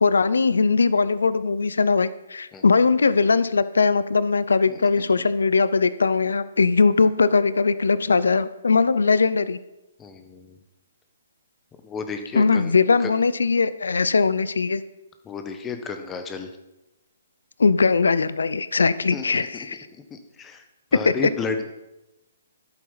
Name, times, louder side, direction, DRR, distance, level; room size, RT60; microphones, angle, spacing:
voice 1, 0.0-9.6 12.3-14.8 17.6-19.9 21.0-21.1, left 4 dB, 85° left, 16 dB, 0.6 m, -20 dB
voice 2, 10.0-10.6 11.8-12.7 13.0-13.1 15.2-16.5 19.1-19.2 19.5-19.7 20.1-20.6 20.9-21.6, left 5 dB, 15° left, 7 dB, 1.3 m, -32 dB
11.0 x 8.9 x 5.8 m, 0.97 s
hypercardioid pair, 150°, 0 cm